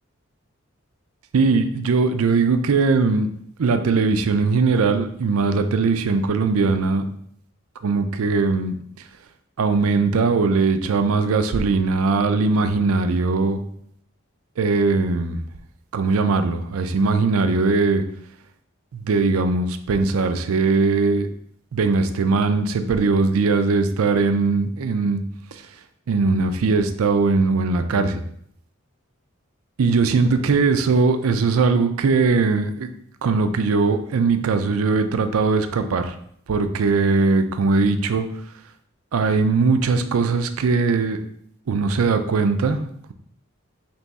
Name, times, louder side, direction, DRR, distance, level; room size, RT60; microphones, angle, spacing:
voice 1, 1.3-3.3 3.6-7.1 7.8-8.8 9.6-13.6 14.6-15.4 15.9-18.0 18.9-21.3 21.7-25.2 26.1-28.2 29.8-32.9 33.2-36.1 36.5-38.3 39.1-41.2 41.7-42.8, right 4 dB, 80° right, 9 dB, 0.4 m, -20 dB
4.1 x 3.0 x 3.5 m, 0.67 s
head